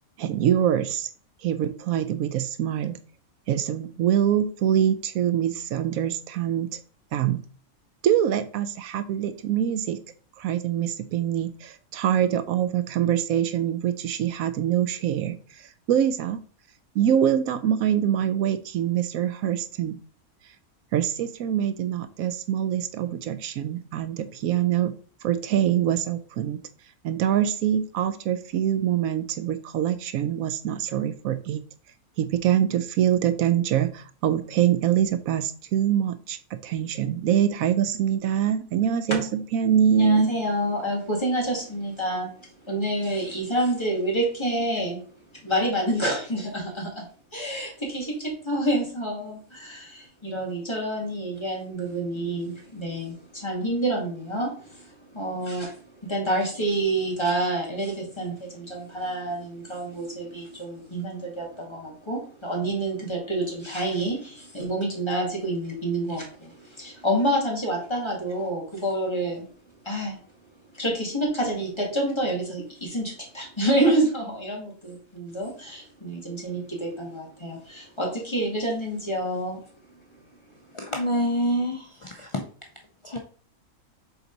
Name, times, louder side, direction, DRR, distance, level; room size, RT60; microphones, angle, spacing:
voice 1, 0.2-1.1 1.4-3.0 3.5-6.8 7.1-7.4 8.0-10.0 10.4-16.4 17.0-20.0 20.9-24.9 25.2-26.6 27.0-31.6 32.2-40.3, right 10 dB, 80° right, 11 dB, 1.0 m, -24 dB
voice 2, 39.9-42.3 42.6-45.0 45.4-47.0 47.3-69.4 69.8-70.2 70.7-79.6, right 1 dB, 20° left, -2 dB, 2.2 m, -28 dB
voice 3, 80.7-82.5 83.0-83.2, equal, 40° left, 2 dB, 0.4 m, -27 dB
6.8 x 4.1 x 4.0 m, 0.43 s
omnidirectional pair, 1.5 m